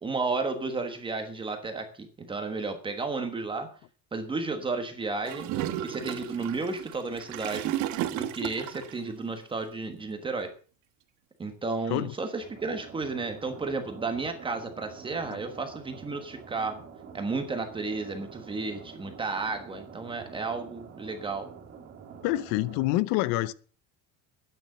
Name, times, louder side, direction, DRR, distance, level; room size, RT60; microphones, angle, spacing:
voice 1, 0.0-3.7 4.1-5.5 5.8-7.7 8.1-10.5 11.4-16.8 17.1-21.5, right 3 dB, 15° right, 1.3 m, -33 dB
Gurgling / Toilet flush, 5.3-9.0, right 12 dB, 50° right, 1.2 m, -33 dB
sound 1, 12.4-22.9, right 6 dB, 35° right, 3.3 m, -47 dB
voice 2, 22.2-23.5, left 17 dB, 65° left, 0.8 m, -27 dB
12.0 x 9.4 x 6.7 m
cardioid pair, 180°, 37 cm